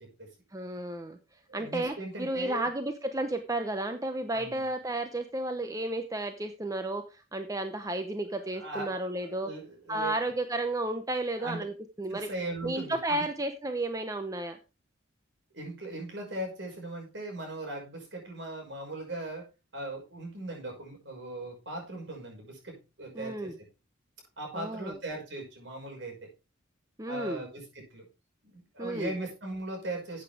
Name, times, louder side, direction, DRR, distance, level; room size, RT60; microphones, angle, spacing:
voice 1, 0.5-1.2 1.5-9.5 9.9-12.3 12.6-14.6 23.1-23.5 24.5-24.9 27.0-27.4 28.8-29.1, right 1 dB, 15° right, 7 dB, 0.8 m, -32 dB
voice 2, 1.5-2.7 4.3-4.6 8.5-8.9 9.2-10.1 11.4-11.6 12.1-13.2 15.5-19.5 19.7-23.5 24.4-26.3 27.1-28.0 28.4-30.2, right 1 dB, 65° right, 2 dB, 6.0 m, -39 dB
13.0 x 8.3 x 3.5 m, 0.29 s
head